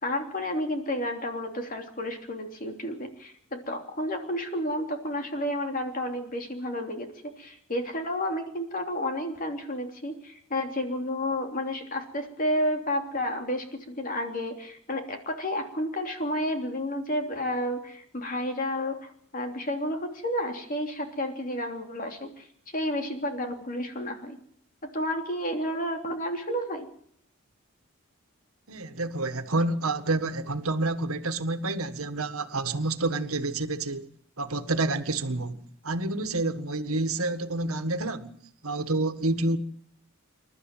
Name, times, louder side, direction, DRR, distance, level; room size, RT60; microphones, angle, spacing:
voice 1, 0.0-24.4 24.8-26.9, left 1 dB, 40° left, 3.2 m, -31 dB
voice 2, 28.7-34.1 34.4-38.3 38.6-39.6, right 2 dB, 85° right, 1.7 m, -28 dB
28.0 x 12.5 x 9.2 m
head